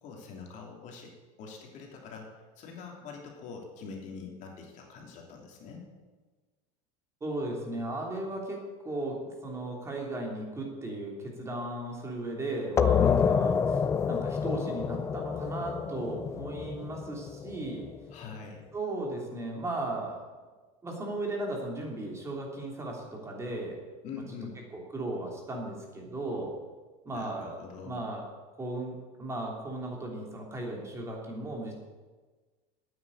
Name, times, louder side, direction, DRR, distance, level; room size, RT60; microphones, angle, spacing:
voice 1, 0.0-1.1 1.4-5.9 12.9-13.5 18.1-18.7 24.0-24.6 27.1-28.0, left 5 dB, 40° left, 0 dB, 3.0 m, -42 dB
voice 2, 7.2-8.6 8.8-13.5 14.1-17.8 18.7-20.2 20.8-23.8 24.7-26.5 27.0-27.5 27.8-28.2 28.6-31.7, right 2 dB, 15° right, 0 dB, 3.1 m, -36 dB
sound 1, 12.8-18.1, left 7 dB, 15° left, 0.3 m, -28 dB
9.5 x 9.3 x 8.8 m, 1.3 s
supercardioid pair, 150°, 18 cm